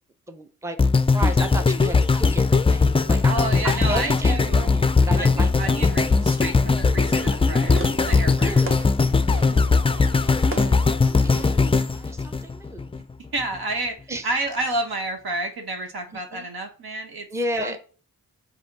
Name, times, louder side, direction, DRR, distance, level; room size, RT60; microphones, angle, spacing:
voice 1, 0.3-5.8 8.2-8.9 10.3-13.0 14.1-14.3 16.1-16.5 17.3-17.8, right 1 dB, 10° right, 7 dB, 0.8 m, -33 dB
sound 1, 0.8-13.0 13.5-13.6, left 4 dB, 15° left, 0.4 m, -20 dB
voice 2, 3.2-4.7 5.2-8.5 13.3-14.0 14.2-17.3 17.6-17.8, right 2 dB, 75° right, 3 dB, 1.6 m, -30 dB
Fireworks, 6.5-11.7, right 3 dB, 35° right, 1.4 m, -38 dB
7.7 x 2.7 x 5.5 m, 0.38 s
cardioid pair, 75°, 38 cm